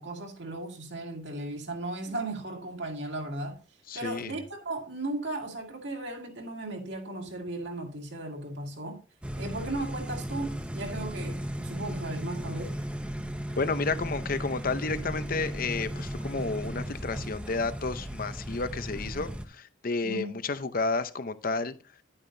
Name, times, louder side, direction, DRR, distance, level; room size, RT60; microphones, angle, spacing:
voice 1, 0.0-3.6 3.9-9.0 9.4-12.7 20.0-20.3, right 2 dB, 60° right, 2.2 m, -36 dB
voice 2, 3.9-4.3 13.6-21.7, left 3 dB, 45° left, 0.7 m, -31 dB
sound 1, 9.2-19.5, equal, 5° right, 0.7 m, -36 dB
11.5 x 8.7 x 2.7 m
head